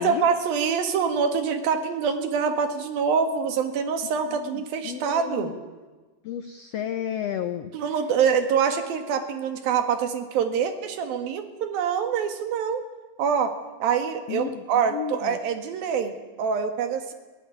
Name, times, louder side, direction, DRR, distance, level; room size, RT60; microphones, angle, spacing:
voice 1, 0.0-5.5 7.7-12.8 13.2-13.5 13.8-17.1, right 6 dB, 80° right, 7 dB, 3.6 m, -25 dB
voice 2, 4.3-4.6 4.8-5.5 6.2-7.7 14.3-15.4, left 9 dB, 90° left, 9 dB, 1.4 m, -32 dB
23.0 x 15.5 x 9.3 m, 1.3 s
omnidirectional pair, 4.2 m